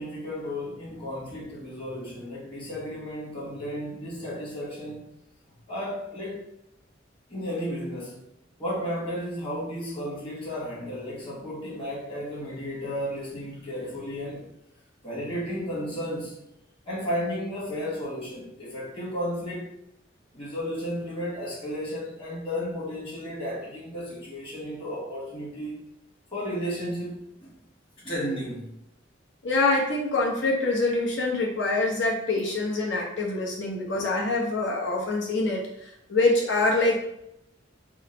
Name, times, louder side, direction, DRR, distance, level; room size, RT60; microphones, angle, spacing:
voice 1, 0.0-5.1 5.7-6.4 7.3-8.2 8.6-14.5 15.0-16.4 16.8-19.7 20.3-25.8 26.3-27.5 28.0-28.7, equal, 25° left, -6 dB, 1.5 m, -33 dB
voice 2, 29.4-37.0, left 2 dB, 65° left, -2 dB, 0.9 m, -25 dB
3.7 x 2.1 x 3.9 m, 0.81 s
head